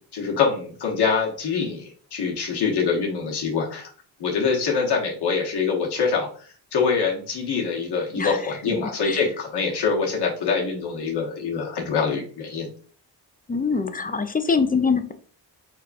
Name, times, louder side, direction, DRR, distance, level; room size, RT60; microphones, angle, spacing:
voice 1, 0.1-3.9 4.2-6.3 6.7-12.7, left 5 dB, 60° left, -2 dB, 1.0 m, -24 dB
voice 2, 13.5-15.1, left 5 dB, 20° left, 9 dB, 0.4 m, -23 dB
4.6 x 2.3 x 2.4 m, 0.44 s
supercardioid pair, 50°, 45 cm